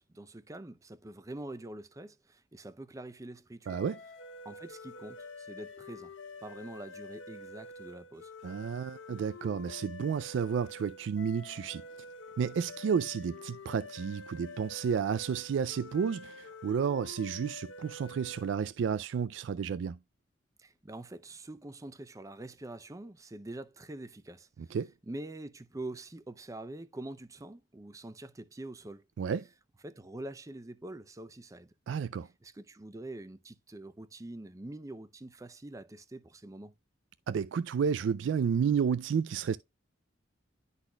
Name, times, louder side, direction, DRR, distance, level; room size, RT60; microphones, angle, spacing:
voice 1, 0.0-3.8 4.4-6.1 6.4-8.3 20.6-24.8 25.1-29.0 29.8-31.7 32.4-36.7, right 1 dB, 15° right, 0.5 m, -45 dB
sound 1, 3.7-18.7, left 2 dB, 85° left, 0.8 m, -48 dB
voice 2, 3.7-4.0 8.4-11.8 12.4-20.0 24.7-24.9 29.2-29.5 31.9-32.3 37.3-39.6, right 7 dB, 75° right, 0.3 m, -31 dB
11.5 x 4.1 x 2.2 m
head